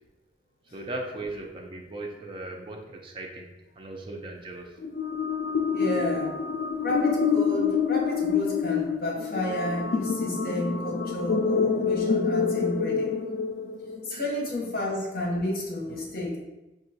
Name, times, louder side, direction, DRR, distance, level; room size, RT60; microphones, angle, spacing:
voice 1, 0.7-4.8 14.1-14.3, right 2 dB, 30° right, 1 dB, 0.5 m, -38 dB
sound 1, 4.8-14.2, left 6 dB, 70° left, 0.4 m, -27 dB
voice 2, 5.7-6.3 6.8-13.1 14.0-16.4, left 1 dB, 55° left, -2 dB, 0.9 m, -31 dB
4.4 x 2.4 x 2.7 m, 1.0 s
head